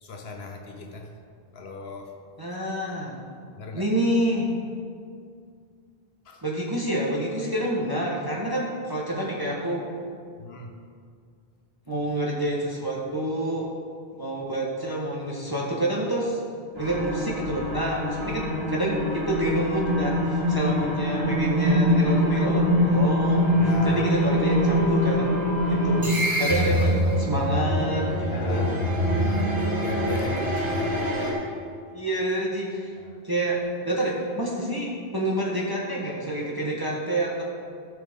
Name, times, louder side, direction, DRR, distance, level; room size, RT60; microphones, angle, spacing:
voice 1, 0.0-1.2 1.5-2.2 3.6-3.9 6.2-6.4 10.4-10.7 20.6-20.9 23.6-24.1 25.7-26.2 28.3-31.5 33.0-33.2, left 2 dB, 80° left, 3 dB, 1.1 m, -37 dB
voice 2, 2.4-3.1 3.7-4.5 6.4-9.9 11.9-13.7 14.2-16.4 16.8-23.5 23.8-25.2 25.6-26.0 26.3-28.7 31.9-32.9 33.2-37.4, right 1 dB, 20° right, -4 dB, 1.2 m, -28 dB
sound 1, 16.7-31.3, equal, 75° right, 2.4 m, -24 dB
14.5 x 6.3 x 3.6 m, 2.2 s
omnidirectional pair, 1.0 m